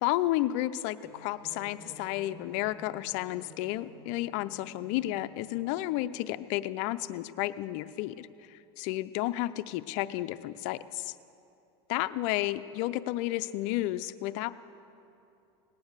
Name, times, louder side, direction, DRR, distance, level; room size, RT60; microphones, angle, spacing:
voice 1, 0.0-11.1 11.9-14.5, left 15 dB, 55° left, 12 dB, 0.5 m, -32 dB
sound 1, 1.0-6.5, equal, 25° right, 1.8 m, -53 dB
18.5 x 9.3 x 6.6 m, 2.7 s
supercardioid pair, 130°, 14 cm